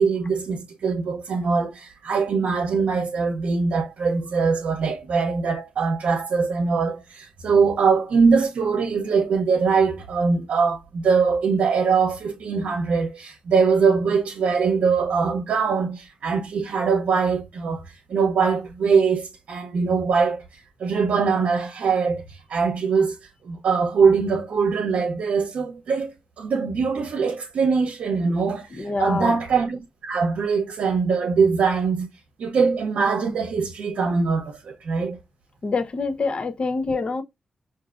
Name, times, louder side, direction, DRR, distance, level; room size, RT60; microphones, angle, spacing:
voice 1, 0.0-23.2 23.4-32.1 32.4-35.2, right 5 dB, 85° right, 0.7 m, -22 dB
voice 2, 28.8-29.4 35.6-37.2, left 4 dB, 50° left, 0.6 m, -25 dB
4.8 x 2.6 x 2.4 m
cardioid pair, 65°, 2 cm